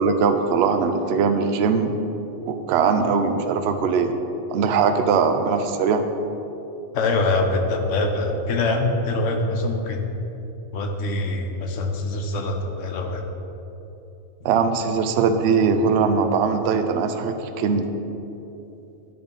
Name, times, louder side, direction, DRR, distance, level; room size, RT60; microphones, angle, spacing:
voice 1, 0.0-1.9 2.5-4.1 4.5-6.0 14.4-17.9, right 5 dB, 65° right, 7 dB, 0.8 m, -21 dB
voice 2, 6.9-10.1 10.7-13.2, left 2 dB, 80° left, 3 dB, 1.1 m, -24 dB
10.5 x 3.8 x 5.3 m, 3.0 s
omnidirectional pair, 1.3 m